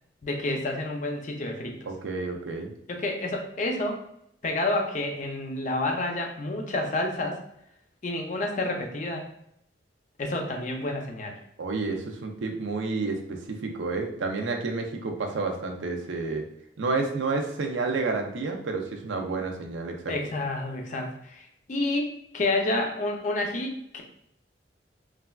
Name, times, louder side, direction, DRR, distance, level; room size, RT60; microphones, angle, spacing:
voice 1, 0.2-1.8 2.9-4.0 4.4-7.4 8.0-9.3 10.2-11.4 20.1-24.0, left 2 dB, 40° left, 3 dB, 0.4 m, -29 dB
voice 2, 1.9-2.7 11.6-16.5 16.8-20.1, right 3 dB, 90° right, 3 dB, 0.5 m, -30 dB
3.2 x 2.3 x 2.2 m, 0.74 s
head